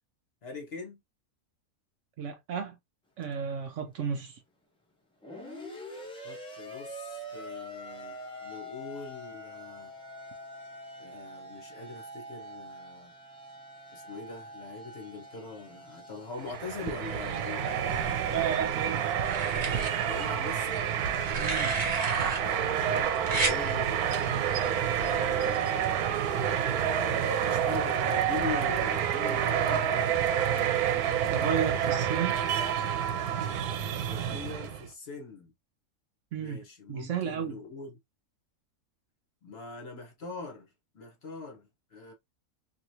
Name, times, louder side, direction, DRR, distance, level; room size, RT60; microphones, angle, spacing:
voice 1, 0.4-1.0 6.2-9.9 11.0-13.1 13.9-17.9 20.0-20.9 22.2-26.0 27.2-30.2 33.9-35.5 36.4-38.0 39.4-42.1, left 4 dB, 50° left, 1.0 m, -42 dB
voice 2, 2.2-2.8 3.2-4.4 18.3-19.1 21.4-21.8 31.3-32.4 36.3-36.6 36.9-37.6, right 7 dB, 65° right, 0.8 m, -33 dB
sound 1, 3.2-3.3 5.2-18.1, equal, 5° left, 0.4 m, -45 dB
sound 2, 16.4-34.9, right 9 dB, 90° right, 1.1 m, -28 dB
sound 3, 18.0-18.7 19.2-19.9 21.1-22.4 23.3-23.6 24.9-25.2, right 2 dB, 35° right, 1.2 m, -32 dB
3.1 x 2.7 x 2.6 m
omnidirectional pair, 1.6 m